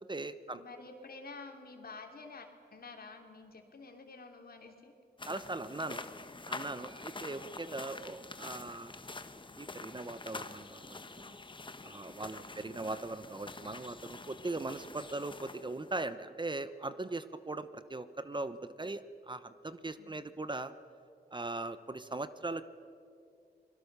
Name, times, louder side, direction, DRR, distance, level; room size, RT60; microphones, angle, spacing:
voice 1, 0.0-0.6 5.2-6.1 6.5-8.9 9.6-11.4 11.8-20.7 21.3-22.6, right 2 dB, 30° right, 12 dB, 1.0 m, -40 dB
voice 2, 0.5-4.9 7.4-7.6 20.0-20.2, left 3 dB, 65° left, 3 dB, 3.2 m, -50 dB
sound 1, 5.2-16.1, left 3 dB, 30° left, 1.2 m, -46 dB
30.0 x 21.5 x 6.8 m, 2.5 s
wide cardioid pair, 80°, 17 cm